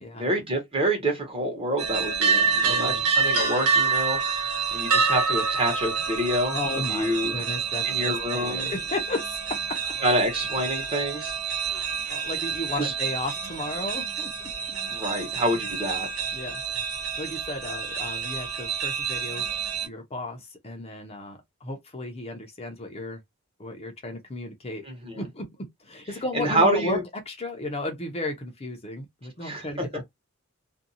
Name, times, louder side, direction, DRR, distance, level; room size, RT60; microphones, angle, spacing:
voice 1, 0.2-4.2 4.7-6.6 6.9-7.3 7.8-8.7 10.0-11.3 12.8-12.9 14.9-16.1 24.9-25.3 26.3-27.0 29.4-29.9, right 1 dB, 25° right, 1.1 m, -27 dB
sound 1, 1.8-19.9, right 5 dB, 75° right, 0.8 m, -28 dB
voice 2, 2.6-3.0 6.5-9.8 11.5-14.3 16.3-16.6 17.2-19.5 19.8-23.2 23.6-24.9 25.2-27.0 27.3-30.0, left 2 dB, 30° left, 0.6 m, -34 dB
2.6 x 2.2 x 2.7 m
head